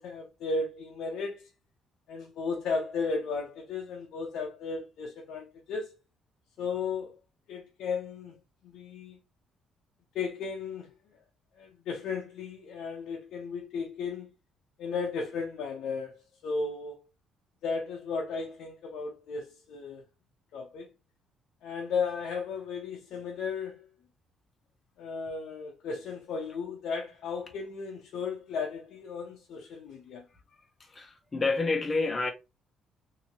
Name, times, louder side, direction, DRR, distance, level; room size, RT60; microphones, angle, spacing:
voice 1, 0.0-1.5 2.1-5.9 6.6-7.2 7.5-9.2 10.1-10.9 11.6-14.3 14.8-16.2 16.4-17.0 17.6-20.0 20.5-20.9 21.6-23.9 25.0-30.3, left 4 dB, 70° left, 0.6 m, -35 dB
voice 2, 30.8-32.3, left 3 dB, 20° left, 0.7 m, -29 dB
2.8 x 2.7 x 2.8 m
cardioid pair, 135°, 0 cm